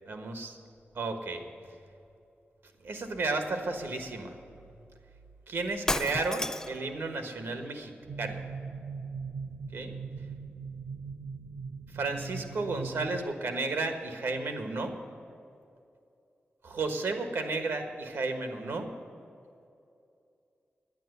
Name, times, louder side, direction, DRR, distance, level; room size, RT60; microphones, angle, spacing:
voice 1, 0.1-0.6 0.9-1.4 2.8-4.4 5.5-7.9 8.2-8.4 9.7-9.9 11.9-14.9 16.6-18.9, right 3 dB, 85° right, 6 dB, 1.4 m, -33 dB
Shatter, 5.9-6.9, left 1 dB, 15° left, 0.4 m, -31 dB
sound 1, 8.0-13.2, right 5 dB, 60° right, 0.8 m, -40 dB
10.5 x 9.8 x 8.0 m, 2.6 s
wide cardioid pair, 130°, 4 cm